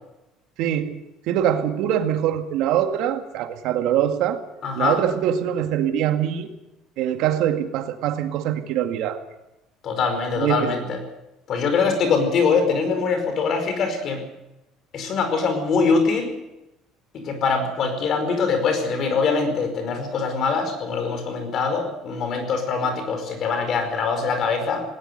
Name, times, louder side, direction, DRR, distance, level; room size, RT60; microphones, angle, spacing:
voice 1, 0.6-1.0 1.3-4.4 4.7-6.5 7.0-9.2 10.4-10.7, right 10 dB, 65° right, 7 dB, 2.0 m, -23 dB
voice 2, 4.6-5.0 9.8-11.0 11.5-14.2 14.9-16.3 17.1-24.8, left 5 dB, 40° left, 7 dB, 5.0 m, -23 dB
19.0 x 18.5 x 8.0 m, 0.93 s
cardioid pair, 165°, 0 cm